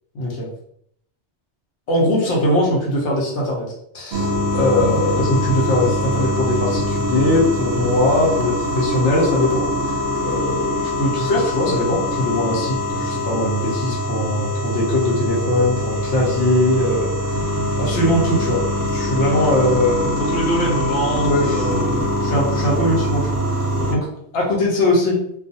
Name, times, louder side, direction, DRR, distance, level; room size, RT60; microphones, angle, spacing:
voice 1, 0.1-0.5 1.9-17.5 17.8-18.6 18.9-20.2 21.2-21.7 22.2-24.1 24.3-25.2, left 1 dB, 75° left, -3 dB, 1.0 m, -21 dB
sound 1, 4.1-24.0, left 1 dB, 65° right, 0.7 m, -23 dB
voice 2, 20.2-22.0 23.8-24.0, right 1 dB, 35° left, -4 dB, 0.9 m, -25 dB
2.4 x 2.3 x 2.6 m, 0.69 s
omnidirectional pair, 1.2 m